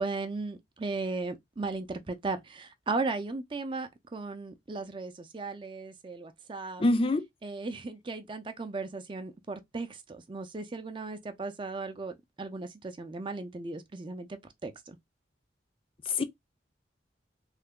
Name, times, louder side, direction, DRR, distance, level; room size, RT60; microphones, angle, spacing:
voice 1, 0.0-6.8 7.4-15.0, right 3 dB, 30° right, 0.4 m, -36 dB
voice 2, 6.8-7.2 16.1-16.2, left 2 dB, 30° left, 0.4 m, -25 dB
3.2 x 2.1 x 3.6 m
head